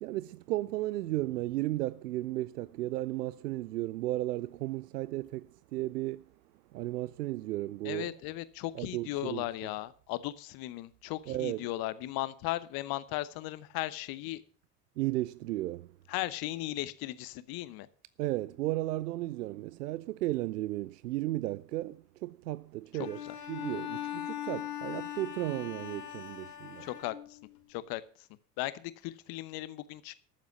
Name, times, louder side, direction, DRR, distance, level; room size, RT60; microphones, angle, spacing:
voice 1, 0.0-6.2 6.7-8.1 8.7-9.5 11.3-11.7 15.0-15.9 18.2-23.2 23.5-26.9, right 16 dB, 70° right, 0.6 m, -34 dB
voice 2, 7.8-14.4 16.1-17.9 22.9-23.3 26.8-27.4 27.7-28.0 28.6-30.2, left 16 dB, 45° left, 1.0 m, -37 dB
Bowed string instrument, 23.0-27.6, left 11 dB, 75° left, 2.0 m, -40 dB
13.0 x 7.4 x 7.0 m
figure-of-eight pair, 70°, 48 cm